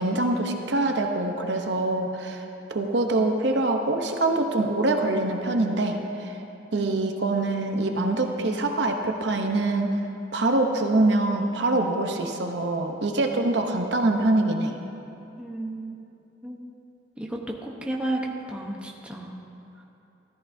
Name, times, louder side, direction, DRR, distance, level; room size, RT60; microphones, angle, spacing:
voice 1, 0.0-2.4 2.7-6.4 6.7-9.9 10.3-14.8, right 2 dB, 65° right, 3 dB, 0.8 m, -24 dB
voice 2, 15.4-15.9 16.4-16.6 17.2-18.2 18.5-19.3 19.8-19.9, right 1 dB, 5° right, -2 dB, 0.9 m, -33 dB
14.5 x 13.5 x 2.7 m, 2.8 s
head